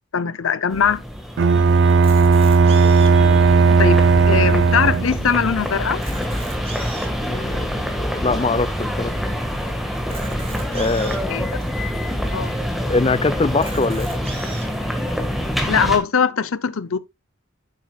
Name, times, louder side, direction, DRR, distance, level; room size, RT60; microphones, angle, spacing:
voice 1, 0.1-1.0 3.8-6.1 11.3-11.6 12.3-12.6 15.7-17.0, left 6 dB, 80° left, 0.6 m, -21 dB
sound 1, 0.7-16.0, equal, ahead, 1.5 m, -26 dB
Bowed string instrument, 1.4-5.3, right 4 dB, 55° right, 0.4 m, -15 dB
Camera, 1.9-3.3 3.9-4.0 4.3-4.4 4.9-5.0 5.8-7.2 7.8-7.9 10.0-11.2 11.9-12.0 12.3-12.4 13.5-14.7, right 4 dB, 30° right, 2.1 m, -37 dB
voice 2, 7.2-9.1 10.7-11.5 12.9-14.1, left 3 dB, 25° left, 0.4 m, -23 dB
9.7 x 8.1 x 2.3 m
head